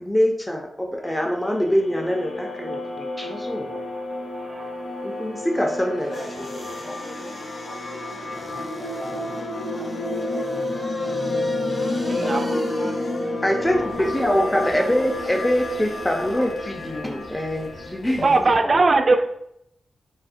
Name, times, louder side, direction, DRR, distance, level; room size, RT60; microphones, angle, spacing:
voice 1, 0.0-3.7 5.0-6.1 13.4-18.3 18.6-18.8, equal, 15° left, 1 dB, 0.5 m, -24 dB
sound 1, 1.1-18.0, left 2 dB, 90° left, 0.5 m, -30 dB
voice 2, 4.4-4.7 12.3-12.4 18.2-19.3, right 3 dB, 55° right, 6 dB, 0.4 m, -19 dB
voice 3, 5.5-7.4 7.6-11.1 11.8-13.6 14.1-14.9 15.2-15.6 15.8-16.7, equal, 70° left, -8 dB, 0.8 m, -40 dB
sound 2, 6.1-16.6 17.0-17.1, left 1 dB, 55° left, 1.3 m, -40 dB
sound 3, 13.6-18.6, left 1 dB, 35° left, 0.8 m, -43 dB
4.0 x 2.1 x 2.5 m, 0.76 s
cardioid pair, 45°, 0 cm